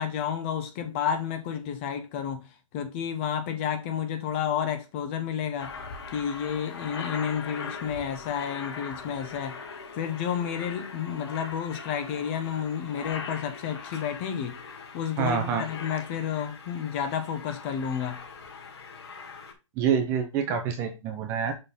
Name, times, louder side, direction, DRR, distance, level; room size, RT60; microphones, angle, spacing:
voice 1, 0.0-2.5 2.7-5.8 6.1-9.6 10.0-14.6 14.9-18.2, left 8 dB, 20° left, 0.8 m, -31 dB
Aircraft, 5.6-19.5, left 5 dB, 50° left, 2.1 m, -41 dB
voice 2, 15.2-15.6 19.8-21.5, right 7 dB, 15° right, 0.7 m, -26 dB
6.7 x 3.9 x 5.4 m
hypercardioid pair, 165°, 17 cm